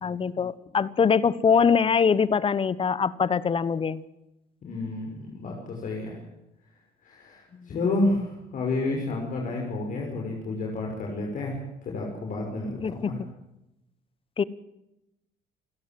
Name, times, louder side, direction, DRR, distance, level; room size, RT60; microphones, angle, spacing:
voice 1, 0.0-4.0 7.6-7.7 12.8-13.2 14.4-14.5, left 6 dB, 30° left, 18 dB, 1.1 m, -23 dB
voice 2, 4.6-6.2 7.0-11.6 11.8-13.2, left 2 dB, 50° left, 0 dB, 6.0 m, -30 dB
28.0 x 16.5 x 7.7 m, 0.92 s
cardioid pair, 110°, 17 cm